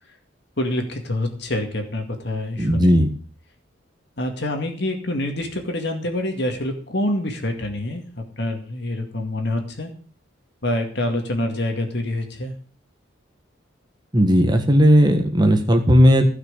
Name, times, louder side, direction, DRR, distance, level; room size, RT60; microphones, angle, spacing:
voice 1, 0.6-3.0 4.2-9.9 10.6-12.5, left 1 dB, 55° left, 4 dB, 2.2 m, -26 dB
voice 2, 2.6-3.1 14.1-16.3, equal, 20° right, 4 dB, 1.6 m, -15 dB
16.0 x 6.1 x 8.3 m, 0.43 s
head